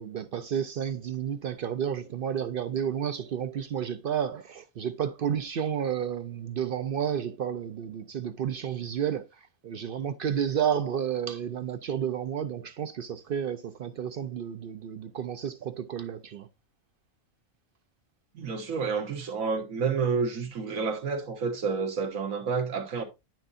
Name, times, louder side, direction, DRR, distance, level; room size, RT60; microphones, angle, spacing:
voice 1, 0.0-9.2 9.6-16.5, right 8 dB, 60° right, 0.6 m, -31 dB
voice 2, 18.3-23.0, right 5 dB, 80° right, 1.6 m, -29 dB
9.9 x 6.1 x 2.5 m
omnidirectional pair, 1.4 m